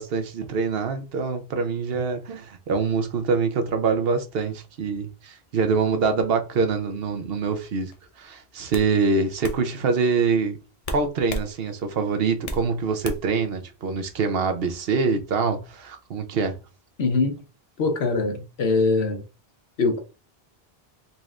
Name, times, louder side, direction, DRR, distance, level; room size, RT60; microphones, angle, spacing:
voice 1, 0.0-7.9 8.2-10.6 10.9-16.6, right 4 dB, 70° right, 0.9 m, -25 dB
sound 1, 7.9-8.1 8.7-8.9 9.4-9.6 10.8-11.5 11.9-12.7 13.0-13.4, left 1 dB, 45° left, 0.5 m, -32 dB
voice 2, 17.0-17.4 17.8-19.2 19.8-20.0, left 3 dB, 80° left, 1.1 m, -22 dB
4.1 x 3.1 x 2.4 m
omnidirectional pair, 1.1 m